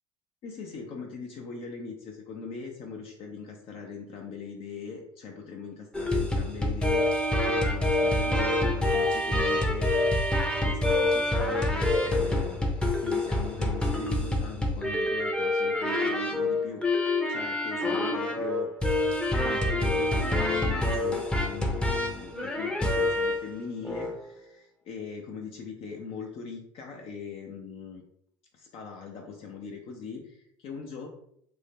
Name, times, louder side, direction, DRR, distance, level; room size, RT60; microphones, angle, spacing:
voice 1, 0.4-10.0 10.6-18.7 19.4-28.0 28.5-31.1, left 5 dB, 55° left, 1 dB, 0.5 m, -41 dB
sound 1, 5.9-23.5 23.8-24.1, left 1 dB, 10° left, 0.6 m, -26 dB
2.5 x 2.1 x 3.4 m, 0.71 s
supercardioid pair, 80°, 12 cm